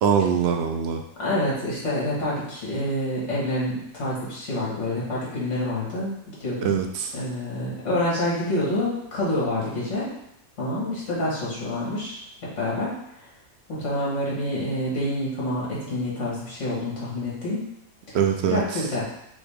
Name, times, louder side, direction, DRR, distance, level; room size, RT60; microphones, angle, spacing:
voice 1, 0.0-1.0 6.6-7.1 18.1-18.6, right 7 dB, 65° right, 5 dB, 0.7 m, -22 dB
voice 2, 1.2-6.8 7.1-10.1 10.6-12.2 12.6-12.9 13.7-17.7 18.1-18.2 18.5-19.1, left 1 dB, 60° left, -6 dB, 2.0 m, -27 dB
6.2 x 2.3 x 3.4 m, 0.80 s
omnidirectional pair, 1.4 m